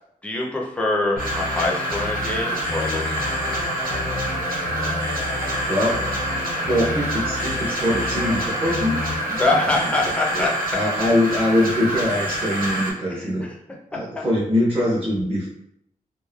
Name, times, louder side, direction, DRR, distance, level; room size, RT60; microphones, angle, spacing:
voice 1, 0.2-3.3 9.4-10.5 13.1-13.3 14.2-14.3, left 2 dB, 10° left, -2 dB, 0.4 m, -24 dB
sound 1, 1.2-10.2, left 3 dB, 70° left, 0.4 m, -32 dB
sound 2, 1.2-12.9, right 1 dB, 85° right, 0.6 m, -27 dB
sound 3, 3.2-10.5, right 2 dB, 65° right, 1.1 m, -39 dB
voice 2, 6.7-9.0 9.3-9.7 10.3-10.4 10.7-13.5 13.9-15.5, left 1 dB, 40° right, -6 dB, 0.7 m, -23 dB
3.0 x 2.0 x 2.2 m, 0.75 s
wide cardioid pair, 180°, 15 cm